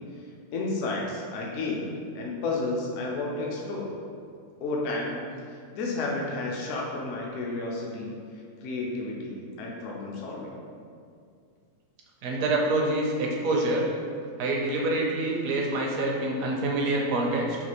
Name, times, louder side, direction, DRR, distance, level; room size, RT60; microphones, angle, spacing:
voice 1, 0.5-3.9 4.6-5.2 5.7-8.1 8.6-10.6, left 2 dB, 65° left, -2 dB, 0.8 m, -31 dB
voice 2, 12.2-13.8 14.4-17.6, right 2 dB, 75° right, -1 dB, 1.0 m, -26 dB
4.0 x 2.4 x 2.9 m, 2.2 s
omnidirectional pair, 1.5 m